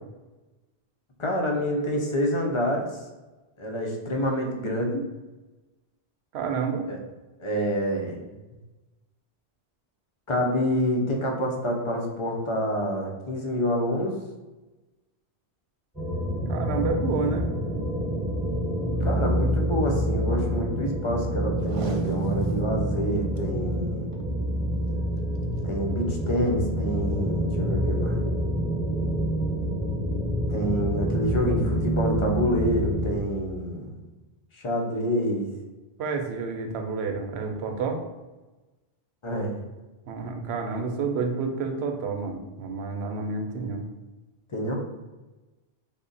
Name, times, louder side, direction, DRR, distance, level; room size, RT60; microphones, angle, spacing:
voice 1, 1.2-2.9 3.6-5.1 6.9-7.0 7.4-8.3 10.3-14.2 19.0-24.1 25.6-28.3 30.5-34.0 34.5-35.5 39.2-39.6 44.5-44.8, equal, 40° left, 1 dB, 0.5 m, -27 dB
voice 2, 6.3-6.9 16.5-17.5 36.0-38.0 40.1-43.8, right 4 dB, 85° right, 4 dB, 0.8 m, -29 dB
sound 1, 15.9-33.2, equal, ahead, 1.0 m, -27 dB
Packing tape duct tape, 21.6-22.7 23.1-23.2 23.4-23.5 24.0-24.3 25.4-25.6 26.2-26.3, right 2 dB, 55° right, 0.4 m, -40 dB
3.6 x 2.1 x 3.8 m, 1.1 s
omnidirectional pair, 1.1 m